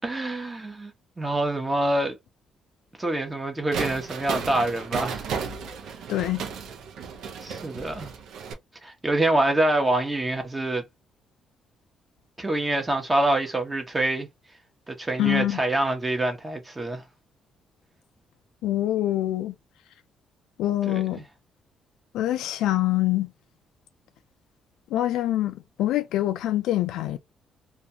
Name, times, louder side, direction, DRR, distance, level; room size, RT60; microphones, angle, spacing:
voice 1, 0.0-2.2 3.0-5.3 7.4-8.1 8.8-10.8 12.4-14.3 14.9-17.0 20.8-21.2, right 1 dB, 20° right, 0.9 m, -26 dB
sound 1, 3.7-8.5, right 6 dB, 80° right, 0.5 m, -34 dB
voice 2, 6.1-6.4 15.2-15.6 18.6-19.5 20.6-21.2 22.1-23.3 24.9-27.2, left 14 dB, 90° left, 0.3 m, -25 dB
2.5 x 2.3 x 2.7 m
cardioid pair, 90°, 0 cm